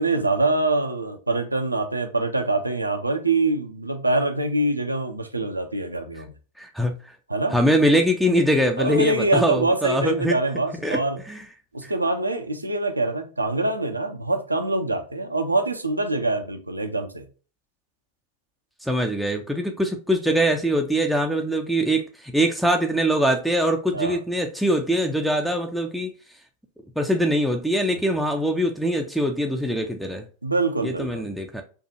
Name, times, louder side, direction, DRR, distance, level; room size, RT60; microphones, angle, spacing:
voice 1, 0.0-6.3 7.3-7.6 8.8-11.2 11.7-17.2 23.9-24.2 27.9-28.2 30.4-31.3, right 2 dB, 85° right, 0.6 m, -24 dB
voice 2, 6.6-6.9 7.5-10.4 10.8-11.0 11.3-11.4 11.8-11.9 18.8-26.1 27.0-30.3 30.8-31.6, equal, ahead, 0.5 m, -23 dB
4.5 x 2.4 x 2.7 m
figure-of-eight pair, 90°, 0 cm